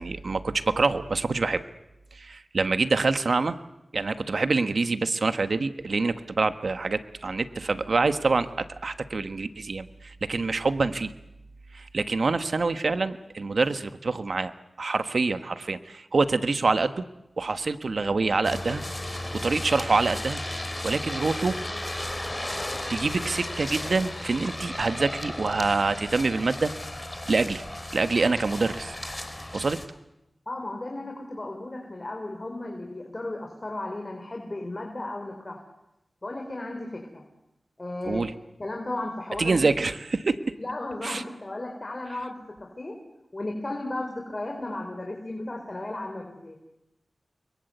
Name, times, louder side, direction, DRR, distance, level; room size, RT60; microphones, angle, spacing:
voice 1, 0.0-1.6 2.1-3.6 3.9-11.1 11.7-14.5 14.8-17.0 17.4-18.8 19.4-20.4 20.8-21.6 22.9-26.7 27.3-27.6 27.9-29.0 29.5-29.8 38.0-38.3 39.4-40.4 41.0-41.2, right 3 dB, 70° right, 10 dB, 1.4 m, -26 dB
sound 1, 18.4-29.9, left 1 dB, 20° left, 3.0 m, -35 dB
voice 2, 30.5-35.6 36.2-37.2 37.8-38.2 38.6-39.7 40.6-43.0 43.3-46.6, left 2 dB, 40° left, 2 dB, 4.6 m, -35 dB
29.0 x 22.5 x 8.0 m, 0.91 s
wide cardioid pair, 55°, 0 cm